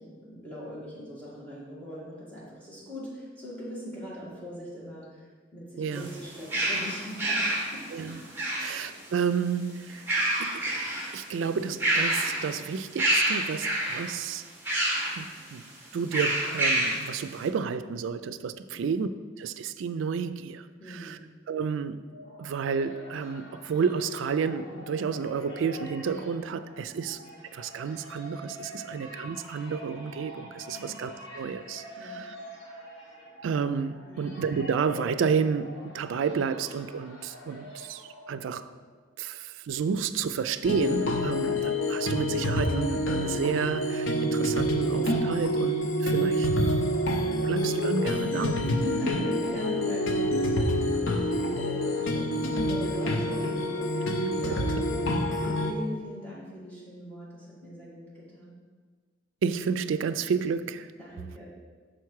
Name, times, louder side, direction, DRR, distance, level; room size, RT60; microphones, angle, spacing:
voice 1, 0.0-8.6 18.7-18.9 20.8-21.2 26.9-27.1 28.7-29.0 30.7-31.0 32.0-32.2 34.0-34.3 48.7-58.6 61.0-61.4, equal, 10° left, -8 dB, 2.0 m, -40 dB
voice 2, 5.8-6.1 7.9-8.2 8.6-10.0 10.4-10.7 11.1-14.4 15.2-19.1 19.4-21.2 21.5-22.1 22.4-27.2 27.5-32.4 33.4-38.7 39.2-46.5 47.1-48.6 54.5-54.6 59.4-60.9, right 6 dB, 85° right, 12 dB, 0.3 m, -31 dB
sound 1, 5.9-9.0 9.9-11.2 11.5-12.6 13.0-14.1 14.7-15.2 16.1-17.1, right 1 dB, 10° right, 1.5 m, -27 dB
sound 2, 21.9-38.8, equal, 70° left, 1.4 m, -46 dB
sound 3, 40.6-55.7, equal, 90° left, 0.7 m, -27 dB
6.3 x 4.6 x 4.7 m, 1.5 s
head